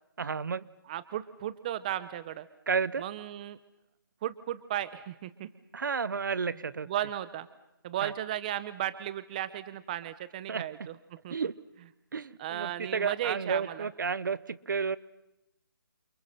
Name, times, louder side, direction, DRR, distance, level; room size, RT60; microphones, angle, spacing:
voice 1, 0.2-0.7 2.7-3.0 5.7-6.9 8.0-8.1 10.5-10.6 11.3-11.5 12.1-15.0, right 5 dB, 60° right, 19 dB, 1.1 m, -31 dB
voice 2, 0.9-2.5 3.0-3.6 4.2-5.5 6.8-7.5 7.8-11.0 11.2-11.3 12.4-13.9, right 12 dB, 20° right, 15 dB, 0.8 m, -35 dB
28.5 x 28.5 x 5.7 m, 0.89 s
hypercardioid pair, 165°, 12 cm